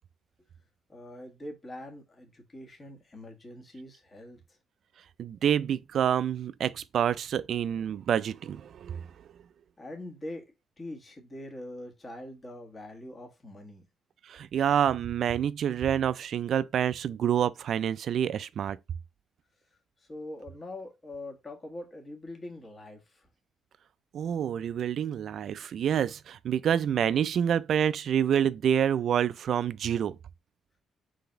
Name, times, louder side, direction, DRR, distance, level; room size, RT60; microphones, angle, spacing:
voice 1, 0.9-4.6 9.8-10.4 10.8-13.8 20.0-23.3, left 1 dB, 30° left, 1.4 m, -43 dB
voice 2, 5.2-9.1 14.2-18.8 24.1-30.2, right 9 dB, 65° right, 0.3 m, -27 dB
4.0 x 3.3 x 3.8 m
cardioid pair, 90°, 0 cm